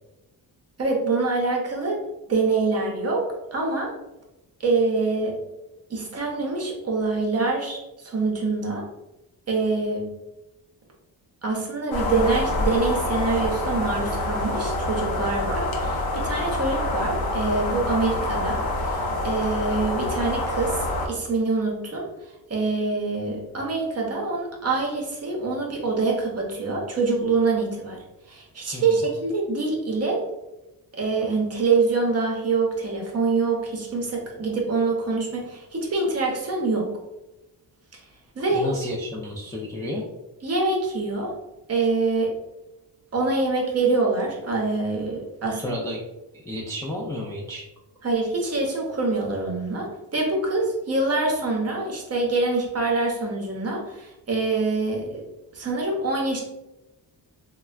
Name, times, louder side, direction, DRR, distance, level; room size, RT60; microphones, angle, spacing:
voice 1, 0.8-2.0 2.3-3.9 4.6-5.4 5.9-8.9 9.5-10.1 11.4-22.1 22.5-28.0 28.3-30.2 31.0-36.9 38.4-38.7 40.4-41.3 41.7-42.3 43.1-45.8 48.0-55.2 55.5-56.4, right 3 dB, 35° right, 0 dB, 0.7 m, -25 dB
sound 1, 11.9-21.1, left 2 dB, 60° left, 0.6 m, -26 dB
voice 2, 28.7-29.0 38.5-40.0 45.4-46.0 46.5-47.6, left 1 dB, 10° left, -4 dB, 0.3 m, -32 dB
3.2 x 2.2 x 2.4 m, 0.98 s
cardioid pair, 115°, 42 cm